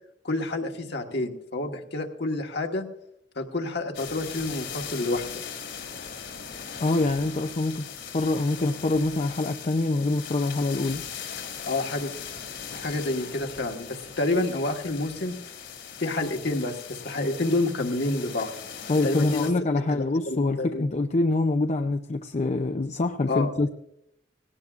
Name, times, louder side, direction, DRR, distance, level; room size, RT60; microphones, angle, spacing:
voice 1, 0.2-2.8 3.3-5.4 11.6-12.1 12.7-15.3 16.0-18.5 19.0-19.5 19.9-20.8 23.3-23.5, left 2 dB, 65° left, 3 dB, 1.5 m, -28 dB
sound 1, 3.9-19.5, left 7 dB, 85° left, 2.8 m, -39 dB
voice 2, 6.8-7.8 8.1-11.1 18.9-23.7, left 2 dB, 40° left, 6 dB, 0.5 m, -25 dB
19.0 x 17.0 x 2.4 m, 0.77 s
head